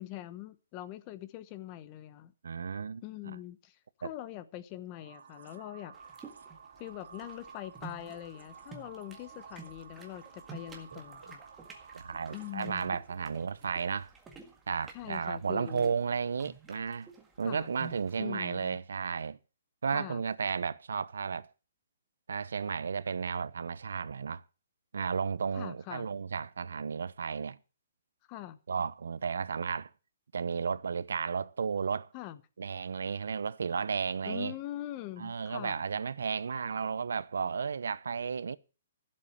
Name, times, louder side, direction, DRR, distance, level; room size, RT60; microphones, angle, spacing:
voice 1, 0.0-2.3 3.0-5.9 6.8-11.4 12.3-13.0 14.9-15.9 17.4-17.7 18.2-18.8 19.8-20.2 25.5-26.1 28.3-28.6 32.1-32.4 34.2-35.8, left 14 dB, 20° left, 0.9 m, -43 dB
voice 2, 2.4-3.4 4.0-4.1 10.9-11.0 11.9-14.1 14.7-17.1 17.4-19.4 19.8-21.5 22.3-24.4 24.9-27.6 28.7-29.9 30.3-32.1 32.6-34.5 35.2-38.6, right 6 dB, 85° right, 0.9 m, -33 dB
sound 1, 4.9-13.0, right 6 dB, 70° right, 1.9 m, -52 dB
sound 2, 5.9-18.2, right 4 dB, 10° right, 1.7 m, -52 dB
15.5 x 7.7 x 7.4 m
hypercardioid pair, 175°, 0 cm